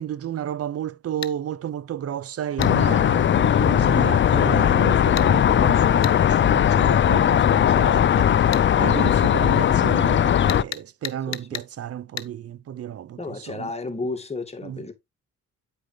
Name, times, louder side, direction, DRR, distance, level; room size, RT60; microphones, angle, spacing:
voice 1, 0.0-13.7 14.6-14.8, right 10 dB, 50° right, 0.7 m, -32 dB
sound 1, 1.2-1.4 2.6-2.8 5.2-5.3 6.0-6.2 8.5-8.7 10.5-11.7 12.2-12.3, left 11 dB, 60° left, 0.9 m, -33 dB
sound 2, 2.6-10.6, left 9 dB, 40° left, 0.5 m, -18 dB
voice 2, 11.3-11.6 13.2-14.9, left 3 dB, 20° left, 2.2 m, -32 dB
9.1 x 5.1 x 3.3 m
cardioid pair, 90°, 30 cm